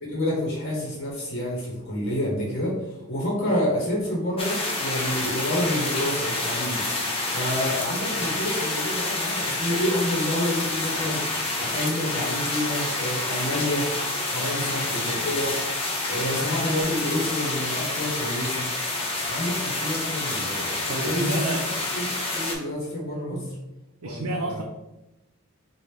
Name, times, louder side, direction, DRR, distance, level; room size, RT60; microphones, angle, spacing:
voice 1, 0.0-6.8 7.1-11.3 11.6-13.9 14.3-15.6 16.1-18.7 19.3-21.7 21.9-23.6 24.0-24.6, left 1 dB, 45° left, -4 dB, 1.2 m, -29 dB
sound 1, 4.4-22.5, left 2 dB, 25° left, 0.6 m, -28 dB
voice 2, 20.8-21.8 23.0-23.5 24.0-24.6, right 1 dB, 75° right, 2 dB, 0.4 m, -31 dB
5.0 x 2.5 x 3.3 m, 0.94 s
head